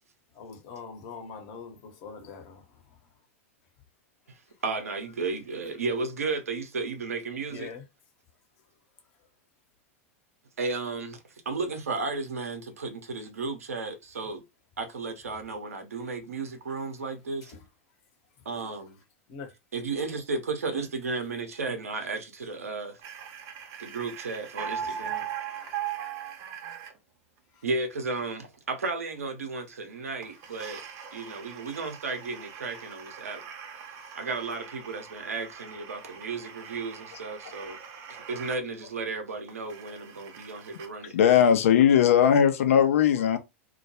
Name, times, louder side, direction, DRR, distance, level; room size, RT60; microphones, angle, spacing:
voice 1, 0.3-3.0 7.5-7.8 17.5-17.6 18.5-18.8 19.3-19.5 23.5-23.8 24.9-25.0 25.5-26.3 27.5-27.6 30.0-30.1 30.6-30.8 31.2-31.3, left 5 dB, 50° left, 0.9 m, -45 dB
voice 2, 4.6-7.7 10.6-11.2 11.5-14.4 14.8-17.6 18.4-19.0 19.7-23.0 23.8-25.3 27.6-30.8 31.1-33.4 34.1-37.8 38.1-41.1, right 3 dB, 85° right, 0.7 m, -34 dB
sound 1, 23.0-27.0 30.2-38.6 38.9-39.0 39.5-40.9, right 8 dB, 45° right, 0.7 m, -40 dB
voice 3, 41.1-43.4, left 8 dB, 70° left, 0.5 m, -19 dB
2.2 x 2.1 x 2.8 m
hypercardioid pair, 95°, 8 cm